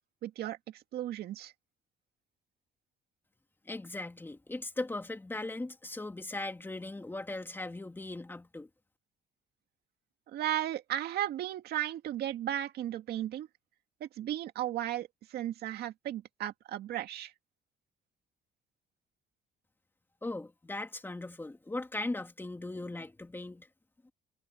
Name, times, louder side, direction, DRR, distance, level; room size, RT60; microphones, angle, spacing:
voice 1, 0.2-0.6 0.9-1.5 10.3-13.5 14.0-17.3, right 12 dB, 70° right, 2.1 m, -35 dB
voice 2, 3.7-8.7 20.2-23.7 24.0-24.1, left 2 dB, 10° left, 2.5 m, -39 dB
cardioid pair, 110°, 17 cm